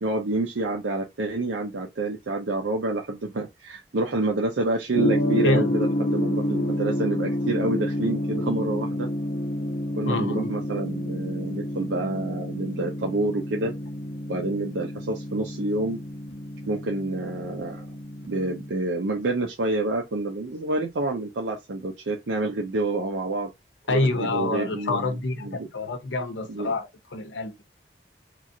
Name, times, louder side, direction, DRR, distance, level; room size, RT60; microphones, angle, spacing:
voice 1, 0.0-9.1 10.0-13.7 14.3-16.0 16.7-17.8 18.3-23.5 23.9-25.7 26.5-26.7, right 2 dB, 90° right, 0.6 m, -28 dB
Gong, 4.9-18.7, equal, 55° left, 0.8 m, -29 dB
voice 2, 5.4-5.7 10.1-10.5 23.9-27.6, left 2 dB, 85° left, 0.7 m, -27 dB
3.0 x 2.4 x 2.6 m
head